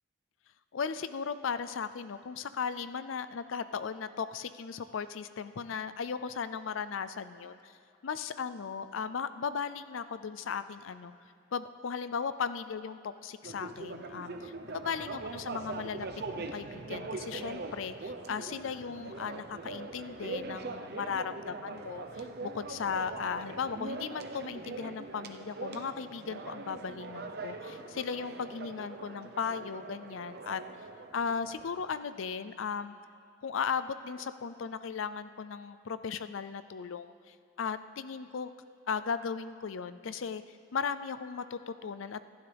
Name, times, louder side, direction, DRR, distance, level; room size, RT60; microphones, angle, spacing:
voice 1, 0.7-7.7 8.0-11.1 11.5-16.1 16.4-30.6 31.1-32.9 33.4-38.5 38.9-42.2, left 6 dB, 70° left, 13 dB, 0.5 m, -36 dB
sound 1, 13.4-31.9, right 3 dB, 55° right, 0.8 m, -42 dB
25.5 x 12.0 x 3.5 m, 2.3 s
head